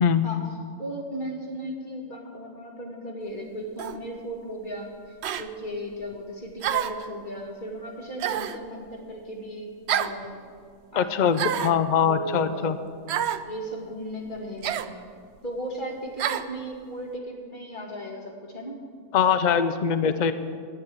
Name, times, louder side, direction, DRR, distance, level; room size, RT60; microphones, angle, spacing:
voice 1, 0.8-10.4 10.9-12.8 13.5-15.1 15.4-18.9, equal, 35° left, 0 dB, 2.1 m, -36 dB
sound 1, 3.8-4.0 5.2-5.5 6.6-7.0 8.2-8.6 9.9-10.2 11.3-11.8 13.1-13.4 14.6-14.9 16.2-16.5, right 10 dB, 65° right, 0.7 m, -28 dB
voice 2, 11.0-12.8 19.1-20.3, left 7 dB, 70° left, 11 dB, 0.4 m, -22 dB
11.0 x 10.0 x 8.5 m, 2.1 s
omnidirectional pair, 1.5 m